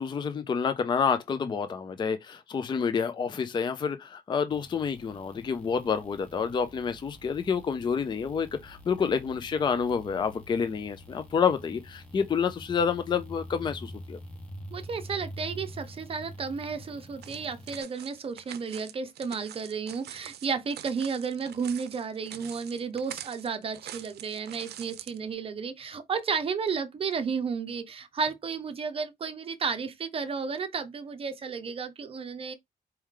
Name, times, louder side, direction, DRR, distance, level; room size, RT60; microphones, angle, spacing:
voice 1, 0.0-14.2, left 6 dB, 30° left, 0.4 m, -28 dB
sound 1, 4.5-17.8, equal, 5° left, 1.0 m, -46 dB
voice 2, 14.7-32.5, right 5 dB, 35° right, 0.7 m, -33 dB
sound 2, 17.2-25.2, right 11 dB, 90° right, 0.5 m, -45 dB
4.5 x 3.1 x 3.7 m
wide cardioid pair, 180°, 16 cm